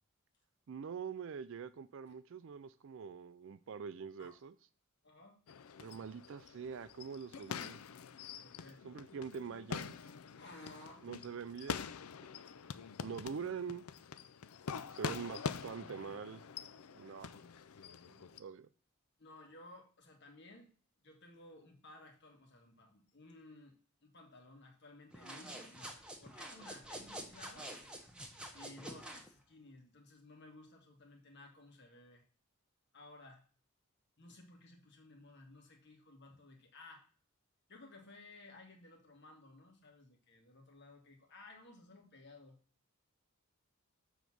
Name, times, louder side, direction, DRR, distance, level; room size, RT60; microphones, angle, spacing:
voice 1, 0.7-4.5 5.8-7.8 8.8-10.0 11.0-11.8 13.0-13.8 14.9-16.4 16.9-17.3 18.0-18.7, right 6 dB, 60° right, 14 dB, 0.4 m, -44 dB
voice 2, 5.0-5.4 8.4-8.8 10.4-11.1 17.0-17.2 17.7-17.9 19.2-20.7 21.0-23.7 24.0-27.7 28.5-32.2 32.9-33.4 34.2-37.1 37.7-42.6, left 2 dB, 55° left, 2 dB, 1.7 m, -57 dB
sound 1, 5.5-18.4, left 6 dB, 85° left, 0.5 m, -45 dB
sound 2, 25.1-29.3, right 1 dB, 5° right, 1.0 m, -48 dB
7.1 x 4.0 x 6.1 m, 0.41 s
head